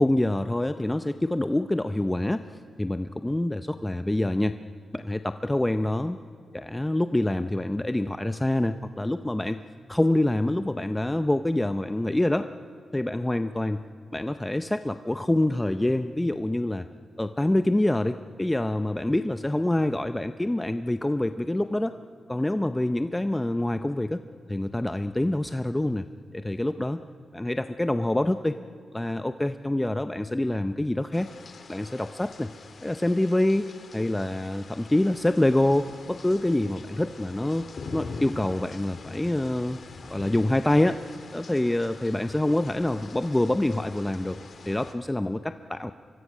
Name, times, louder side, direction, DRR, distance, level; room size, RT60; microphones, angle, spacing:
voice 1, 0.0-2.4 2.8-4.6 4.9-6.2 6.5-9.6 9.9-12.5 12.9-13.8 14.1-16.9 17.2-21.9 22.3-24.2 24.5-26.0 26.3-27.0 27.3-28.5 28.9-31.3 31.7-32.5 32.8-37.7 37.9-39.8 40.1-41.0 41.3-44.4 44.7-45.9, left 1 dB, 10° left, 9 dB, 0.6 m, -26 dB
sound 1, 31.1-44.9, left 4 dB, 55° left, 2.1 m, -44 dB
24.5 x 23.0 x 6.3 m, 2.3 s
cardioid pair, 80°, 0 cm